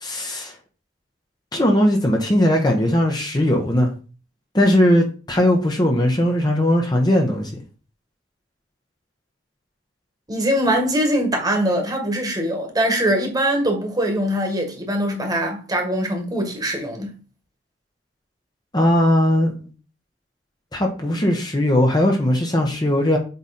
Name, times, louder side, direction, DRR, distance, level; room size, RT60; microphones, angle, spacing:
voice 1, 0.0-0.5 1.5-3.9 4.5-7.5 18.7-19.7 20.7-23.2, left 1 dB, 25° left, 1.2 m, -19 dB
voice 2, 10.3-17.1, right 1 dB, 20° right, 1.7 m, -22 dB
8.0 x 3.5 x 4.3 m
head